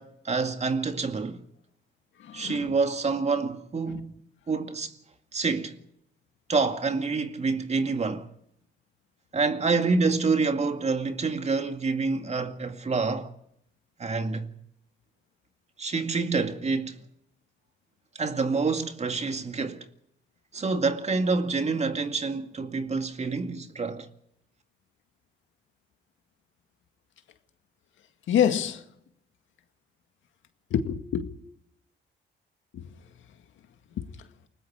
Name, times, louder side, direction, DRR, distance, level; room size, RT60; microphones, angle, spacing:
voice 1, 0.0-1.4 2.3-4.9 5.3-5.8 6.5-8.3 9.3-13.3 14.0-14.5 15.8-17.0 18.2-19.9 20.5-24.1, right 4 dB, 35° right, 2.2 m, -27 dB
voice 2, 2.2-2.7 3.9-4.0 28.3-28.8 30.7-31.3 32.7-32.9 34.0-34.3, left 9 dB, 75° left, 2.0 m, -27 dB
29.0 x 19.5 x 4.9 m
cardioid pair, 90°, 20 cm